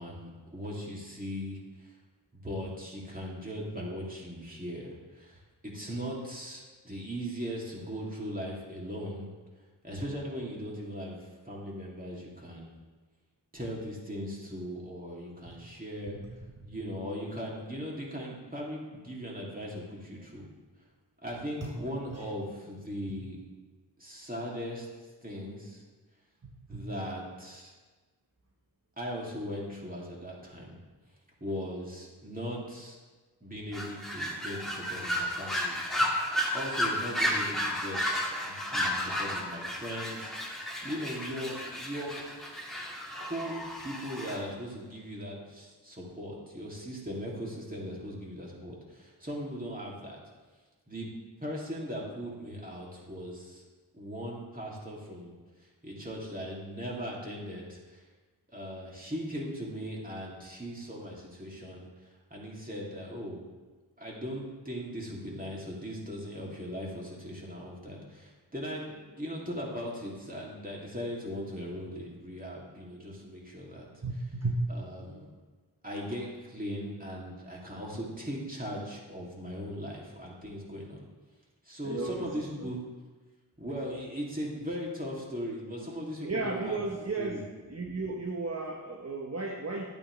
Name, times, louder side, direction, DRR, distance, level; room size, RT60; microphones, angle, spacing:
voice 1, 0.0-1.9 2.3-9.3 9.8-12.7 13.5-16.2 16.7-20.5 21.2-23.4 24.0-24.9 25.2-25.8 26.7-27.7 29.0-30.8 31.4-33.0 33.4-35.8 36.5-42.2 43.2-50.2 50.9-51.1 51.4-53.6 53.9-55.3 55.8-58.0 58.5-61.9 62.3-63.4 64.0-74.3 74.7-75.3 75.8-81.0 81.6-82.8 83.6-86.8 87.2-87.5, equal, 20° right, -4 dB, 2.7 m, -39 dB
voice 2, 26.4-26.9 74.0-74.6 81.8-82.7 86.2-87.4 87.7-89.9, right 3 dB, 35° right, 1 dB, 1.0 m, -34 dB
sound 1, 33.7-44.4, equal, ahead, 2.0 m, -33 dB
12.0 x 8.6 x 3.3 m, 1.3 s
wide cardioid pair, 50°, 42 cm